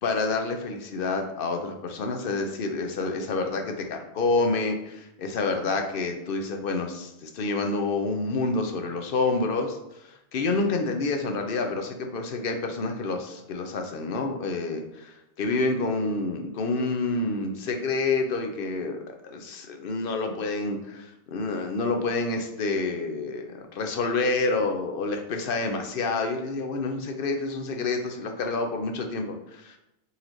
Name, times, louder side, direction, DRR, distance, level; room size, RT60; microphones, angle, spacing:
voice 1, 0.0-9.8 10.0-19.0 19.2-29.8, left 3 dB, 60° left, 4 dB, 0.7 m, -28 dB
4.1 x 3.0 x 3.9 m, 0.85 s
omnidirectional pair, 1.3 m